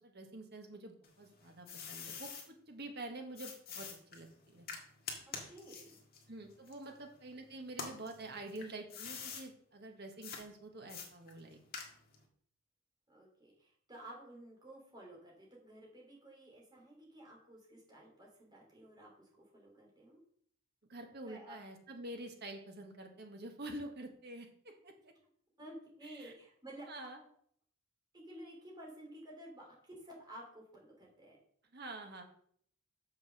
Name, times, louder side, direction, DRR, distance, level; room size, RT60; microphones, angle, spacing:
voice 1, 0.0-4.7 6.3-11.6 20.9-25.1 26.0-26.3 26.9-27.2 31.7-32.2, right 2 dB, 50° right, 4 dB, 1.6 m, -47 dB
sound 1, 1.0-2.5 3.4-7.3 7.7-9.5 10.2-10.4 10.9-12.2, left 5 dB, 45° left, 1.7 m, -46 dB
voice 2, 5.3-6.0 13.1-20.2 21.2-21.6 25.6-26.9 28.1-31.4, right 1 dB, 20° right, -3 dB, 3.3 m, -53 dB
6.7 x 6.3 x 6.5 m, 0.63 s
head